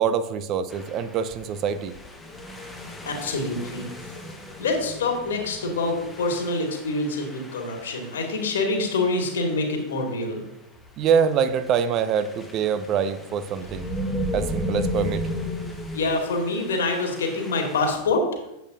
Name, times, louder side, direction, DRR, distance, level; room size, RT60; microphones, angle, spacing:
voice 1, 0.0-2.0 11.0-13.9 14.3-15.3, right 7 dB, 35° right, 12 dB, 0.6 m, -24 dB
sound 1, 0.7-9.8 10.8-10.9 11.3-17.9, left 1 dB, 10° left, 1.1 m, -35 dB
voice 2, 3.0-3.9 4.6-10.4 15.9-18.2, left 3 dB, 65° left, 2 dB, 2.0 m, -26 dB
9.3 x 8.0 x 2.7 m, 0.89 s
figure-of-eight pair, 90°, 0 cm